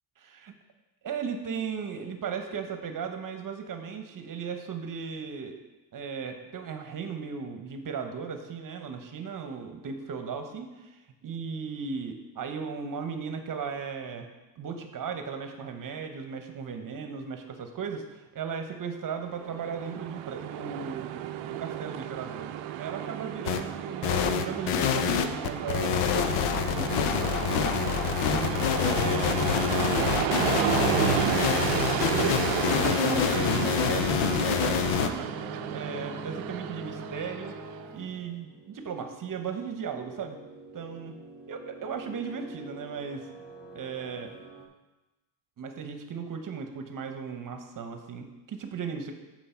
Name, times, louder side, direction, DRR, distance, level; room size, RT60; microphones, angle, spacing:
voice 1, 0.2-0.5 1.0-5.5 5.9-14.3 14.6-22.5 22.8-27.9 28.3-32.4 32.8-35.3 35.7-37.6 37.9-40.4 40.7-41.2 41.5-43.3 43.7-44.3 45.6-49.1, right 6 dB, 45° right, 6 dB, 1.0 m, -36 dB
Train, 19.2-37.9, right 11 dB, 80° right, 0.6 m, -32 dB
sound 1, 23.5-23.6 24.0-35.1, left 8 dB, 80° left, 0.7 m, -26 dB
sound 2, 30.0-44.7, right 2 dB, ahead, 1.2 m, -46 dB
8.0 x 4.6 x 4.4 m, 1.1 s
cardioid pair, 95°, 47 cm